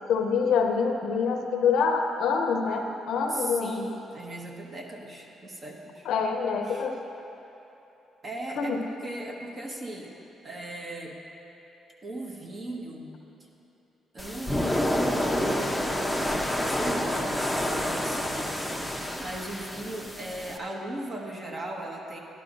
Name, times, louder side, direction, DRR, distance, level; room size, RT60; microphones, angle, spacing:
voice 1, 0.1-3.9 6.0-7.0 8.6-8.8, left 5 dB, 80° left, 4 dB, 0.7 m, -26 dB
voice 2, 3.3-6.1 6.6-6.9 8.2-10.1 10.4-11.2 12.0-13.1 14.1-18.5 19.2-22.2, right 1 dB, 40° right, 0 dB, 1.3 m, -38 dB
sound 1, 14.2-20.6, left 1 dB, ahead, 0.7 m, -28 dB
12.0 x 11.5 x 2.6 m, 3.0 s
cardioid pair, 90°, 0 cm